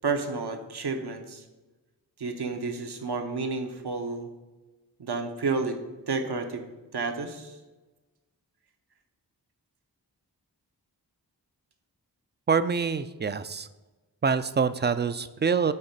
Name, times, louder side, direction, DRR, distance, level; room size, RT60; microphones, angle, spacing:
voice 1, 0.0-1.4 2.2-4.3 5.0-5.8 6.1-6.6 6.9-7.5, right 4 dB, 70° right, 6 dB, 0.9 m, -30 dB
voice 2, 12.5-13.7 14.2-15.7, right 5 dB, 30° right, 14 dB, 0.3 m, -25 dB
8.8 x 3.2 x 5.2 m, 1.2 s
cardioid pair, 40°, 41 cm